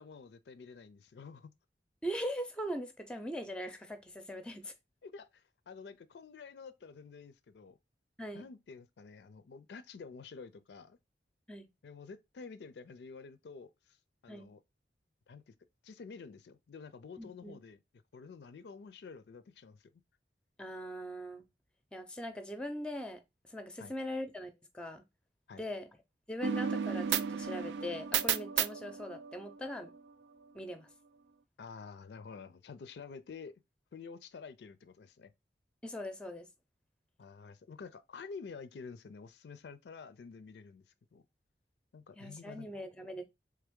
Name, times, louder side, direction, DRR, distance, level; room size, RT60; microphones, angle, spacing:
voice 1, 0.0-1.5 5.0-7.8 8.3-11.0 11.8-14.0 14.2-14.6 15.3-15.5 15.8-17.8 18.1-19.9 23.8-23.9 25.5-25.6 31.6-33.6 33.9-35.3 37.2-40.8 41.1-41.2 41.9-42.7, left 5 dB, 75° left, 0.4 m, -49 dB
voice 2, 2.0-4.7 8.2-8.4 11.5-11.7 14.3-14.5 17.2-17.5 20.6-21.4 21.9-23.2 23.5-25.0 25.6-25.9 26.3-29.9 30.5-30.9 35.8-36.5 42.2-43.2, equal, 5° left, 0.5 m, -41 dB
sound 1, 26.4-30.0, right 8 dB, 85° right, 0.3 m, -34 dB
3.4 x 3.3 x 3.6 m
head